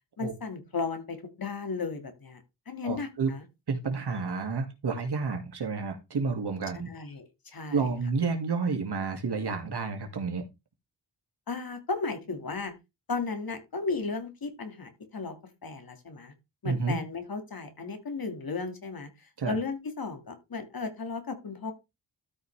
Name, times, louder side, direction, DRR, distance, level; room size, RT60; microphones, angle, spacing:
voice 1, 0.2-3.4 6.9-7.8 11.5-12.7 13.1-15.4 15.6-16.3 16.6-21.7, left 4 dB, 55° left, 1.9 m, -35 dB
voice 2, 2.8-3.3 3.7-6.9 7.7-10.4 16.6-17.0 19.4-19.5, right 4 dB, 65° right, 2.1 m, -30 dB
13.0 x 5.4 x 3.3 m
wide cardioid pair, 135°, 42 cm